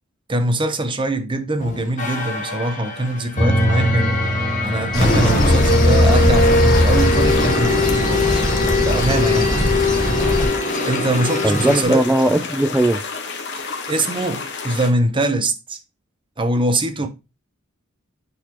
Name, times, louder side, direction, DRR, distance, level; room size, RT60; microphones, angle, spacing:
voice 1, 0.3-4.2 4.6-8.5 8.8-9.6 10.8-12.0 13.5-15.8 16.4-17.1, right 1 dB, 25° right, 0.8 m, -23 dB
sound 1, 1.6-11.8, left 2 dB, 35° left, 1.2 m, -19 dB
sound 2, 4.9-14.9, left 4 dB, 55° left, 1.4 m, -31 dB
sound 3, 4.9-10.4, equal, 20° left, 1.7 m, -22 dB
voice 2, 11.4-13.0, right 1 dB, 5° right, 0.3 m, -18 dB
8.6 x 4.1 x 3.0 m
head